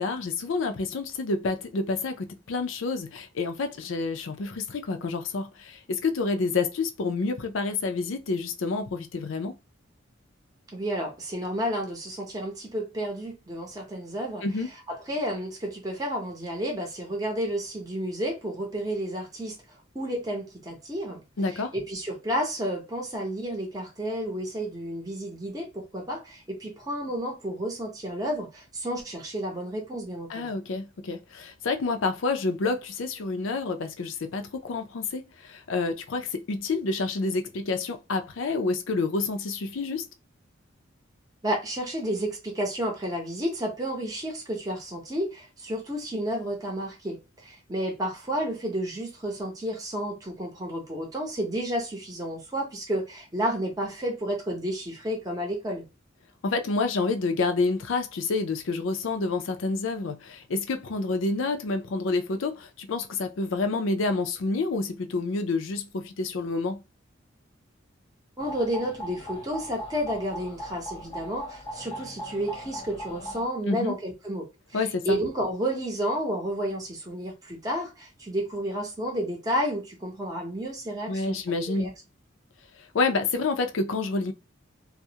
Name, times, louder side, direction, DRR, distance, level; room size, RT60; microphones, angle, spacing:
voice 1, 0.0-9.6 14.4-14.7 21.4-21.7 30.3-40.0 56.4-66.8 73.6-73.9 74.7-75.2 81.1-81.9 82.9-84.3, left 3 dB, 75° left, 0.5 m, -28 dB
voice 2, 10.7-14.4 14.9-19.6 19.9-21.2 21.5-30.6 41.4-55.8 68.4-74.5 74.7-81.4 81.7-81.9, equal, 20° right, 0.7 m, -31 dB
sound 1, 68.4-73.4, equal, 25° left, 0.7 m, -39 dB
2.3 x 2.0 x 2.7 m
head